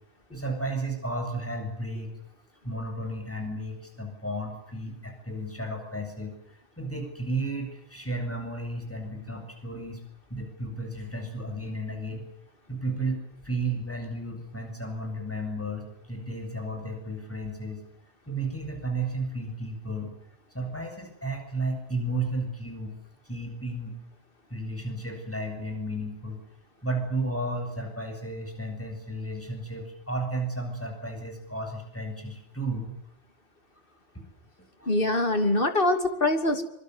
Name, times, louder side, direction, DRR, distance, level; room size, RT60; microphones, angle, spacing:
voice 1, 0.3-2.1 2.6-10.0 10.3-12.3 12.7-17.8 18.3-20.1 20.5-23.0 23.2-24.0 24.5-26.4 26.8-32.9 34.1-34.3 34.6-34.9, right 2 dB, 10° left, 4 dB, 7.8 m, -33 dB
voice 2, 34.9-36.6, left 2 dB, 50° left, 7 dB, 3.1 m, -24 dB
25.5 x 24.5 x 8.1 m, 0.71 s
omnidirectional pair, 1.2 m